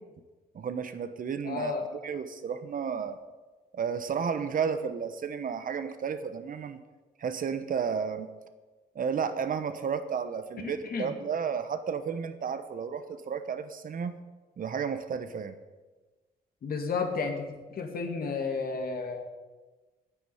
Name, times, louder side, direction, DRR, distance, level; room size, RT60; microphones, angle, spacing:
voice 1, 0.5-1.7 2.0-3.2 3.7-6.8 7.2-8.3 8.9-14.2 14.6-15.5, right 6 dB, 55° right, 10 dB, 1.0 m, -32 dB
voice 2, 1.4-1.9 10.6-11.1 16.6-19.2, left 4 dB, 60° left, 4 dB, 2.3 m, -32 dB
9.7 x 9.5 x 8.6 m, 1.3 s
cardioid pair, 100°, 17 cm